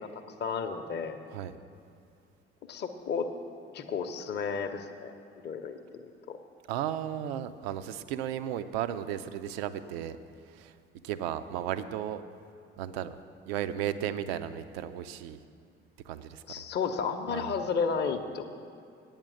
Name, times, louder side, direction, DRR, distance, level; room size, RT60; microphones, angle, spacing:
voice 1, 0.0-1.2 2.7-3.3 3.7-5.1 5.4-6.4 16.5-18.5, left 5 dB, 30° left, 5 dB, 0.7 m, -33 dB
voice 2, 6.7-10.2 10.4-10.8 11.0-12.2 12.8-13.2 13.5-15.4 16.0-16.4 17.3-17.6, right 10 dB, 65° right, 12 dB, 0.5 m, -34 dB
9.0 x 8.8 x 6.3 m, 2.4 s
figure-of-eight pair, 50°, 33 cm